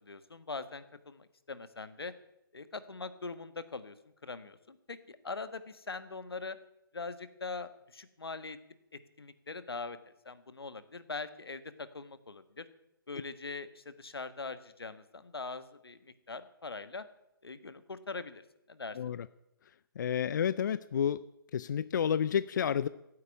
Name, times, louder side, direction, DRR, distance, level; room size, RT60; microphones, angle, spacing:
voice 1, 0.0-2.1 2.5-3.9 4.2-6.6 6.9-8.6 8.9-12.6 13.1-17.0 17.4-18.4 18.7-19.2, left 4 dB, 85° left, 13 dB, 1.5 m, -42 dB
voice 2, 19.0-19.3 20.0-21.2 21.5-22.9, left 8 dB, 55° left, 16 dB, 0.5 m, -30 dB
15.0 x 8.4 x 9.8 m, 0.87 s
hypercardioid pair, 145°, 12 cm